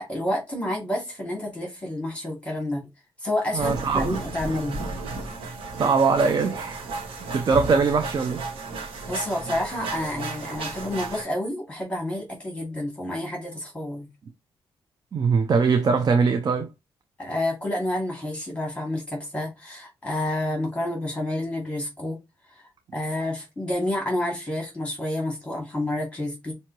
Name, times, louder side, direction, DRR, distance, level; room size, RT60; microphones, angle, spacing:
voice 1, 0.0-2.8 3.2-4.9 9.1-14.1 17.2-22.2 22.9-26.5, left 1 dB, 15° left, 2.4 m, -29 dB
voice 2, 3.5-4.2 5.8-6.9 7.3-8.4 15.1-16.7, right 5 dB, 45° right, 0.6 m, -21 dB
sound 1, 3.6-11.2, right 3 dB, 90° right, 1.4 m, -34 dB
5.7 x 2.8 x 3.0 m
cardioid pair, 95°, 9 cm